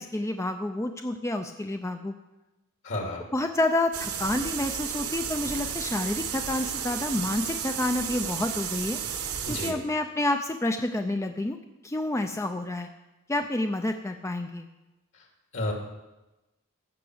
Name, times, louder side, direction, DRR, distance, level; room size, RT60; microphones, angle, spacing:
voice 1, 0.0-2.2 3.3-9.0 9.5-11.6 11.8-12.9 13.3-14.7, left 1 dB, 15° left, 6 dB, 0.5 m, -29 dB
voice 2, 2.8-3.3 9.4-9.8 15.5-15.7, left 1 dB, 60° left, 1 dB, 2.7 m, -31 dB
sound 1, 3.9-9.7, right 8 dB, 75° right, 1.2 m, -33 dB
14.5 x 5.9 x 7.8 m, 1.0 s
head